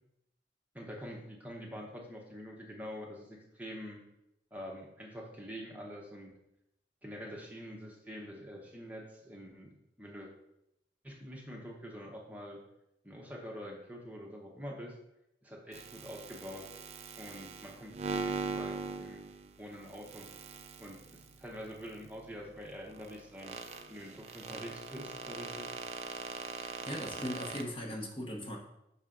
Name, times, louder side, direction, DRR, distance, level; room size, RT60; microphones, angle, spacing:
voice 1, 0.7-4.0 4.5-6.3 7.0-9.7 10.0-10.3 11.0-12.6 13.0-14.9 15.4-16.6 17.2-19.3 19.6-20.3 20.8-23.6 23.9-25.7, equal, 10° right, -1 dB, 0.8 m, -45 dB
sound 1, 15.7-27.6, right 4 dB, 35° right, 0.4 m, -42 dB
voice 2, 26.6-28.6, left 1 dB, 30° left, 0 dB, 0.9 m, -39 dB
5.6 x 5.5 x 3.8 m, 0.84 s
head